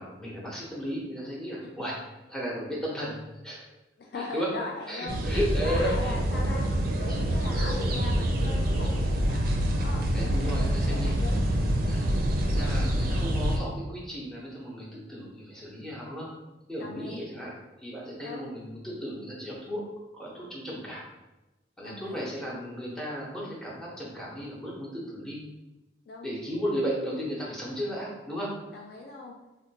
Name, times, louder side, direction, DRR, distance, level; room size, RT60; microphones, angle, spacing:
voice 1, 0.0-2.0 2.3-3.7 4.1-4.5 4.9-6.4 7.1-7.2 10.1-11.1 11.9-12.1 12.4-16.3 16.7-17.5 17.8-19.8 20.1-21.0 21.8-25.4 26.2-28.5, equal, 5° left, -5 dB, 0.7 m, -35 dB
voice 2, 4.0-5.2 5.6-6.6 7.0-9.4 9.8-11.4 16.8-17.2 18.2-18.5 21.8-22.2 26.1-26.3 28.7-29.3, left 3 dB, 55° left, -1 dB, 0.3 m, -39 dB
sound 1, 5.1-13.6, equal, 50° right, 0.4 m, -26 dB
3.8 x 2.2 x 2.8 m, 1.0 s
head